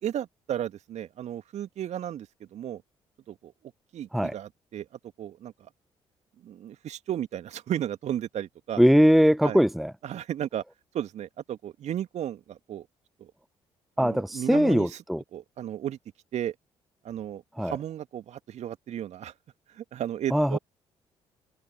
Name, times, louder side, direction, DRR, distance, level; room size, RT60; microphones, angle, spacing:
voice 1, 0.0-2.8 3.3-3.5 3.9-4.9 5.2-5.7 6.4-8.8 9.4-9.6 10.0-10.6 10.9-12.9 13.2-13.3 14.0-15.0 15.3-16.0 16.3-16.5 17.0-19.3 19.7-20.6, right 11 dB, 50° right, 2.5 m, -34 dB
voice 2, 8.8-9.9 14.0-15.2 17.6-17.7 20.3-20.6, equal, ahead, 0.8 m, -21 dB
figure-of-eight pair, 45°, 14 cm